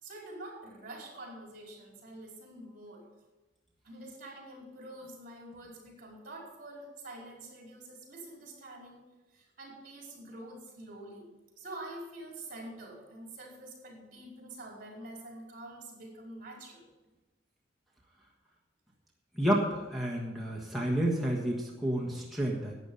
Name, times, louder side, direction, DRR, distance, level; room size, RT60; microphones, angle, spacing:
voice 1, 0.0-3.1 3.8-9.1 9.3-11.3 11.6-16.9, right 1 dB, 50° right, -2 dB, 4.7 m, -46 dB
voice 2, 19.4-22.7, right 1 dB, ahead, -4 dB, 1.4 m, -30 dB
12.0 x 9.0 x 5.5 m, 1.1 s
head